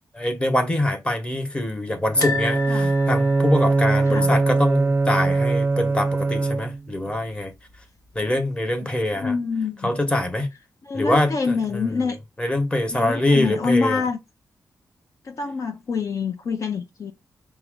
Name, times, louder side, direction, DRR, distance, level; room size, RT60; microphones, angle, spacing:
voice 1, 0.1-7.5 8.1-9.4 9.8-10.5 10.9-12.0 12.4-14.0, left 1 dB, 15° left, 1.0 m, -24 dB
Bowed string instrument, 2.1-7.0, right 3 dB, 30° right, 0.5 m, -21 dB
sound 1, 2.2-5.3 5.5-5.7 6.0-6.1 7.3-7.8 8.4-8.5, left 4 dB, 70° left, 1.2 m, -33 dB
voice 2, 9.1-9.9 10.8-12.2 12.9-14.2 15.2-17.1, left 4 dB, 55° left, 0.5 m, -26 dB
5.6 x 2.0 x 3.6 m
wide cardioid pair, 100°, 7 cm